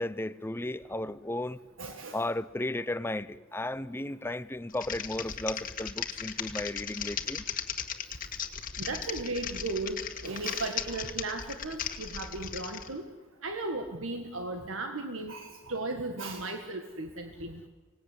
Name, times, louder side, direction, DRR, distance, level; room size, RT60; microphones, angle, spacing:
voice 1, 0.0-1.6 2.1-7.4, left 1 dB, 10° left, 15 dB, 0.7 m, -34 dB
voice 2, 1.8-2.2 8.8-10.0 10.2-13.0 13.4-17.6, right 2 dB, 90° right, 5 dB, 1.8 m, -36 dB
Typing, 4.7-12.9, left 8 dB, 45° left, 1.8 m, -37 dB
24.5 x 19.0 x 9.8 m, 1.3 s
head